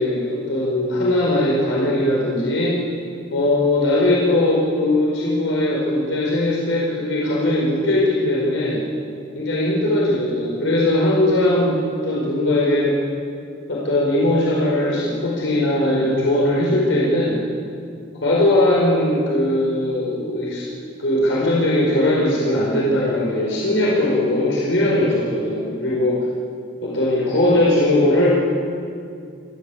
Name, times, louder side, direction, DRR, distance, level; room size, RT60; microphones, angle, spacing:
voice 1, 0.0-2.7 3.3-8.8 9.3-11.8 12.0-12.9 13.7-17.4 18.2-26.3 26.8-28.3, left 1 dB, 85° left, -5 dB, 4.9 m, -19 dB
28.0 x 13.0 x 8.6 m, 2.4 s
head